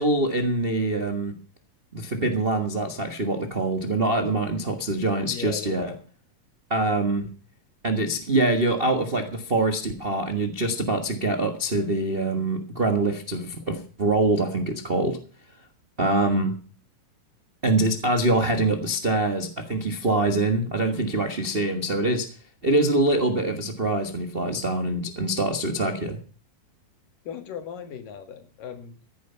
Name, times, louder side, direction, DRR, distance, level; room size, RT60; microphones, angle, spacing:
voice 1, 0.0-1.3 1.9-5.9 6.7-7.3 7.8-15.2 16.0-16.6 17.6-22.3 22.6-26.2, right 2 dB, 75° right, 6 dB, 0.5 m, -24 dB
voice 2, 5.3-6.0 27.3-29.0, left 7 dB, 75° left, 8 dB, 3.6 m, -37 dB
15.0 x 10.5 x 5.6 m, 0.39 s
omnidirectional pair, 3.9 m